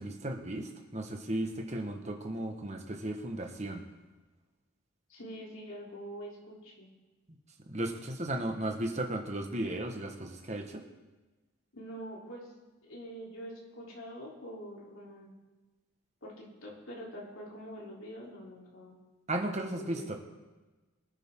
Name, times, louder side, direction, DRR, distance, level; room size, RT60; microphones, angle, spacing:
voice 1, 0.0-3.8 7.7-10.8 19.3-20.1, right 1 dB, 30° right, 3 dB, 1.5 m, -35 dB
voice 2, 5.1-6.9 11.7-15.3 16.2-18.9 19.5-20.1, equal, 65° left, -3 dB, 3.6 m, -45 dB
23.5 x 9.1 x 3.8 m, 1.2 s
head